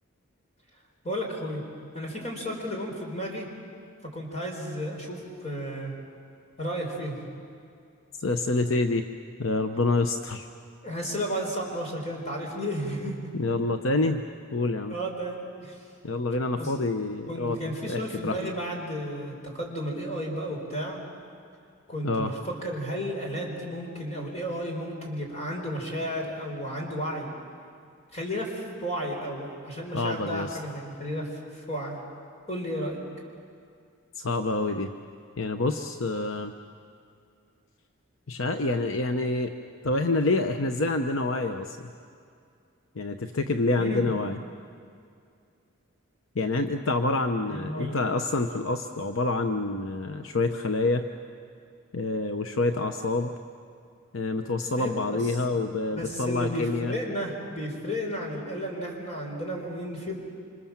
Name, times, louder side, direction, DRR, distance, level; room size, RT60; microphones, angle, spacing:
voice 1, 1.0-1.6 1.9-3.5 4.1-5.9 6.6-7.2 10.8-13.3 14.9-15.9 16.6-16.7 17.3-21.0 21.9-27.3 28.1-32.0 32.5-33.0 43.8-44.1 47.5-48.0 54.8-55.4 55.9-60.1, equal, 30° left, 0 dB, 4.9 m, -33 dB
voice 2, 8.2-9.0 9.4-10.5 13.3-14.2 14.5-14.9 16.0-18.4 22.0-22.3 29.9-30.6 34.2-34.9 35.4-36.5 38.3-39.5 39.8-41.9 43.0-44.4 46.3-51.1 51.9-53.3 54.1-56.9, left 2 dB, 70° left, 7 dB, 0.9 m, -27 dB
27.5 x 25.5 x 7.4 m, 2.4 s
head